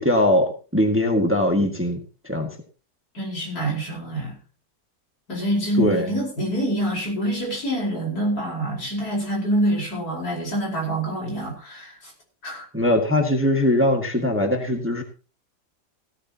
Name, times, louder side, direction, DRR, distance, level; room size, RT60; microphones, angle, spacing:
voice 1, 0.0-2.0 2.2-2.5 5.8-6.1 12.7-15.0, left 1 dB, 10° right, 3 dB, 1.8 m, -21 dB
voice 2, 3.1-4.4 5.3-12.1 12.4-12.7, right 1 dB, 65° left, -1 dB, 5.4 m, -26 dB
16.5 x 13.5 x 2.9 m, 0.35 s
omnidirectional pair, 1.8 m